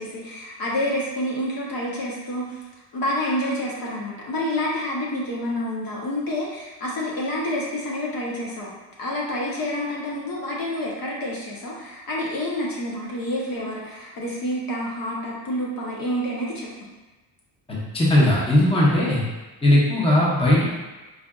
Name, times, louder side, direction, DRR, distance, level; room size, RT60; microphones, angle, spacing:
voice 1, 0.0-2.6 2.9-8.7 9.0-16.7, left 1 dB, 50° left, -4 dB, 0.7 m, -28 dB
voice 2, 17.7-19.2 19.6-20.6, left 1 dB, 10° left, -6 dB, 0.8 m, -18 dB
4.7 x 2.4 x 2.3 m, 1.2 s
cardioid pair, 120°, 47 cm